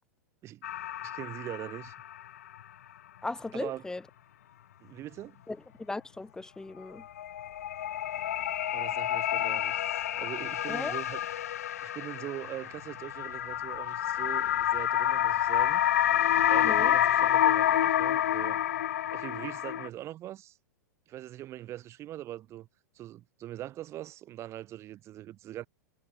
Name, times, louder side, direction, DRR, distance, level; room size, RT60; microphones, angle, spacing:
sound 1, 0.6-2.2 2.5-2.6 7.0-19.9, left 11 dB, 60° left, 2.2 m, -28 dB
voice 1, 1.0-1.9 3.5-3.8 4.8-5.4 8.7-9.8 10.2-11.2 11.8-15.8 16.5-18.6 19.1-20.6 21.1-22.7 22.9-25.7, right 13 dB, 30° right, 2.0 m, -42 dB
voice 2, 3.2-4.0 5.5-7.0 10.7-10.9 16.6-17.0, left 2 dB, 5° left, 1.9 m, -37 dB
figure-of-eight pair, 95°, 9 cm